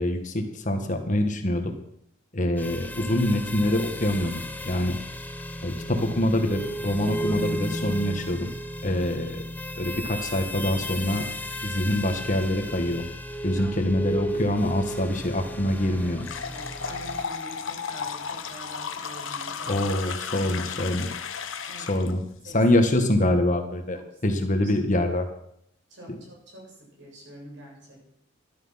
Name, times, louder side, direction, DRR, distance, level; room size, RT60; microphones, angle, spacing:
voice 1, 0.0-1.7 2.3-5.0 5.6-8.5 8.8-9.4 9.8-11.2 11.6-13.0 13.4-16.2 19.7-21.1 21.8-22.2 22.5-25.3, left 1 dB, 40° left, 6 dB, 1.6 m, -25 dB
sound 1, 2.6-17.2, equal, 10° left, 0.9 m, -34 dB
voice 2, 13.5-14.0 15.7-19.9 20.2-20.9 21.7-22.1 22.4-22.6 23.9-24.2 24.5-24.9 25.9-28.0, right 1 dB, 65° right, -2 dB, 7.4 m, -46 dB
sound 2, 16.2-22.1, left 6 dB, 85° left, 1.2 m, -34 dB
13.5 x 12.5 x 5.8 m, 0.73 s
head